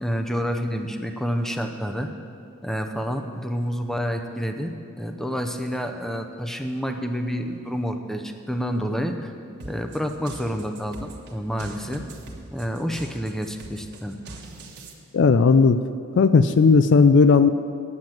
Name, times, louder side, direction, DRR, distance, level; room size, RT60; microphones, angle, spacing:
voice 1, 0.0-2.1 2.6-9.3 9.6-12.1 12.5-14.2, equal, ahead, 5 dB, 0.6 m, -28 dB
sound 1, 9.6-14.9, right 2 dB, 55° right, 1.3 m, -41 dB
voice 2, 15.1-15.8 16.2-17.5, left 4 dB, 55° left, 11 dB, 0.4 m, -15 dB
9.7 x 7.7 x 8.8 m, 2.6 s
head